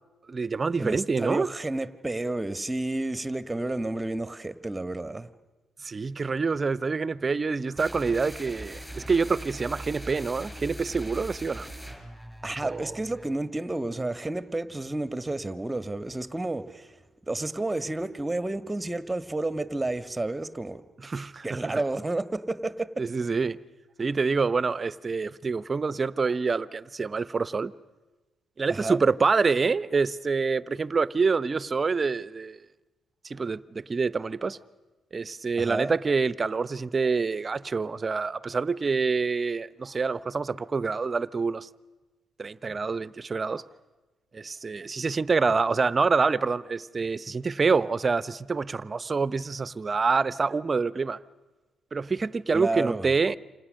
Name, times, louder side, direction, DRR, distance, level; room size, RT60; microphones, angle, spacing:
voice 1, 0.3-1.5 5.8-11.7 12.7-12.9 21.0-21.8 23.0-23.6 24.0-27.7 28.6-32.6 33.2-34.6 35.1-41.7 42.4-43.6 44.3-51.2 51.9-53.4, right 4 dB, 40° right, 0.9 m, -26 dB
voice 2, 0.8-5.3 12.4-16.9 17.3-20.8 21.4-23.0 28.7-29.0 35.6-35.9 52.5-53.1, right 2 dB, 15° right, 1.5 m, -31 dB
sound 1, 7.8-13.4, right 1 dB, ahead, 6.6 m, -41 dB
28.5 x 26.5 x 6.5 m
hypercardioid pair, 50°, 0 cm